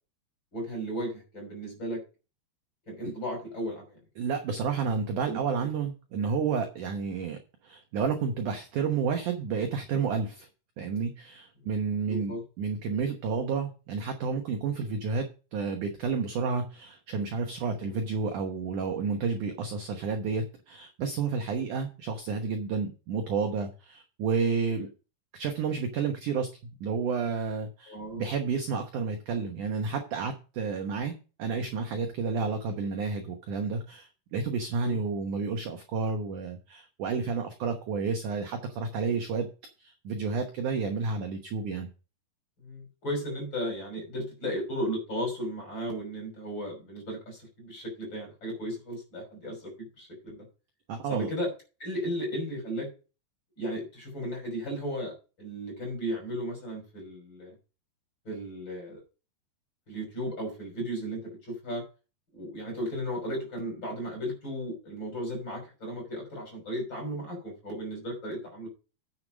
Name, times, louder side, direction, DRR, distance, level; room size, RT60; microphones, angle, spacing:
voice 1, 0.5-2.0 2.9-4.0 5.3-5.4 12.1-12.4 17.7-18.0 27.9-28.2 34.8-35.0 42.6-50.4 51.1-51.5 51.8-52.9 53.6-57.5 58.2-59.0 59.9-61.8 62.3-68.7, equal, 25° left, 1 dB, 6.3 m, -35 dB
voice 2, 4.2-7.4 7.6-10.5 10.8-24.9 25.3-26.5 26.8-39.5 39.8-41.9 50.9-51.3, right 5 dB, 65° right, 5 dB, 2.2 m, -31 dB
9.6 x 7.6 x 5.2 m, 0.33 s
omnidirectional pair, 4.8 m